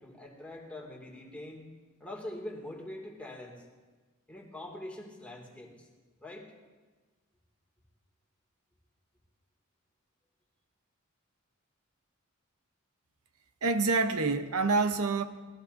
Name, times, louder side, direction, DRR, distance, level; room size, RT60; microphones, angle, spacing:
voice 1, 0.0-1.7 2.0-3.6 4.3-5.9 6.2-6.5, left 1 dB, 5° left, -1 dB, 2.4 m, -43 dB
voice 2, 13.6-15.2, right 3 dB, 85° right, 8 dB, 0.9 m, -27 dB
24.5 x 19.0 x 2.7 m, 1.3 s
head